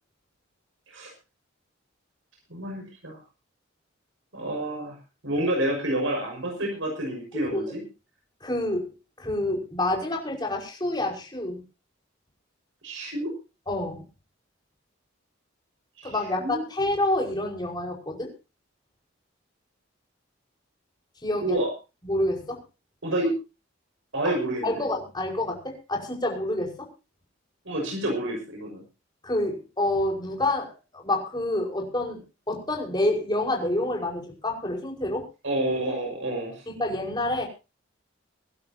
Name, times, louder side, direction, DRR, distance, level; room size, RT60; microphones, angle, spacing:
voice 1, 2.5-3.2 4.3-5.0 5.2-7.8 12.8-13.3 16.0-16.6 21.4-21.7 23.0-23.3 24.1-24.7 27.6-28.8 35.4-36.6, right 1 dB, 75° right, 1 dB, 6.0 m, -29 dB
voice 2, 8.4-11.6 13.7-14.0 16.0-18.3 21.2-21.6 22.0-22.6 24.6-26.9 29.2-32.2 32.5-35.2 36.7-37.5, left 1 dB, 20° left, -1 dB, 5.5 m, -28 dB
24.5 x 12.0 x 2.9 m, 0.31 s
head